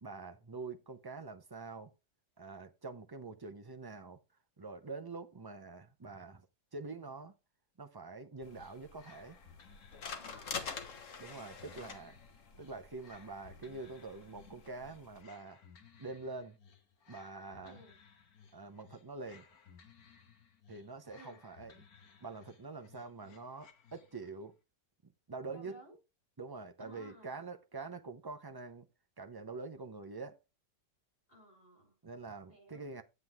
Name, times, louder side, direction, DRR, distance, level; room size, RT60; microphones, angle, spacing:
voice 1, 0.0-1.9 2.4-4.2 4.6-6.5 6.7-7.3 7.8-9.4 11.2-12.2 12.6-15.6 16.0-16.6 17.1-17.8 18.5-19.5 20.7-21.8 22.2-24.5 25.0-25.8 26.4-28.9 29.2-30.4 32.0-33.0, right 3 dB, 35° right, 0.3 m, -45 dB
sound 1, 8.4-15.2, left 5 dB, 60° left, 1.6 m, -47 dB
sound 2, 8.5-24.4, left 6 dB, 75° left, 1.7 m, -61 dB
voice 2, 10.2-10.6 11.7-11.9 17.6-17.9 21.1-21.4 25.5-25.9 26.8-27.4 31.3-32.0 32.5-32.9, equal, 40° left, 6.0 m, -57 dB
9.4 x 7.8 x 3.5 m
omnidirectional pair, 1.6 m